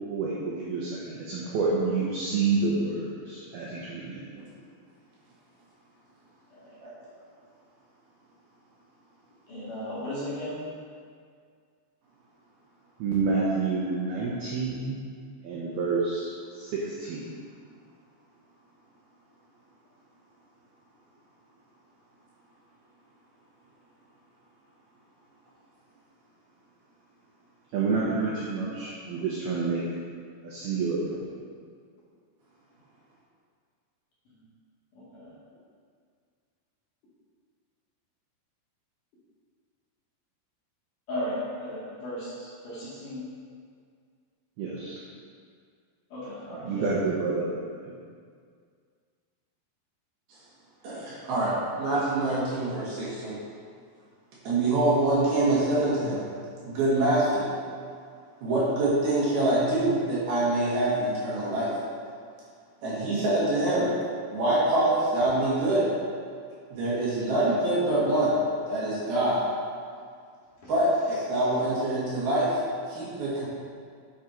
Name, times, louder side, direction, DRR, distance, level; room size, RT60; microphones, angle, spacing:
voice 1, 0.1-4.2 13.0-15.0 15.4-17.3 27.7-29.8 30.4-31.2 44.6-45.0 46.5-47.5 47.8-48.0, right 4 dB, 80° right, -6 dB, 2.2 m, -28 dB
voice 2, 9.5-10.6 34.3-34.4 34.9-35.3 41.1-43.2 46.1-46.9 70.6-70.7, equal, 50° left, -10 dB, 2.9 m, -36 dB
voice 3, 50.8-53.4 54.5-56.2 56.6-57.5 58.4-61.7 62.8-63.9 64.3-65.9 66.7-68.4 68.7-69.4 70.7-72.5 72.9-73.5, right 2 dB, 55° right, -8 dB, 3.4 m, -25 dB
8.6 x 7.6 x 4.4 m, 2.1 s
omnidirectional pair, 5.9 m